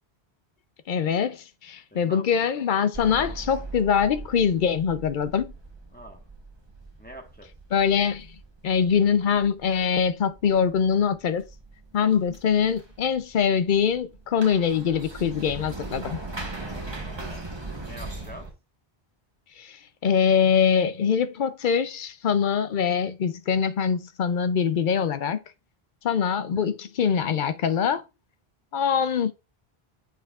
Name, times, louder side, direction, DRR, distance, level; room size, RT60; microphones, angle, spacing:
voice 1, 0.9-5.5 7.7-8.3 8.6-11.4 11.9-16.2 19.6-25.4 26.0-28.0 28.7-29.3, left 7 dB, 60° left, 0.6 m, -23 dB
voice 2, 1.9-2.3 5.9-6.2 7.0-7.5 16.6-17.4 17.8-18.5, equal, 10° left, 1.1 m, -45 dB
sound 1, 2.9-18.5, right 2 dB, 25° right, 1.1 m, -40 dB
7.5 x 5.6 x 2.4 m
omnidirectional pair, 1.0 m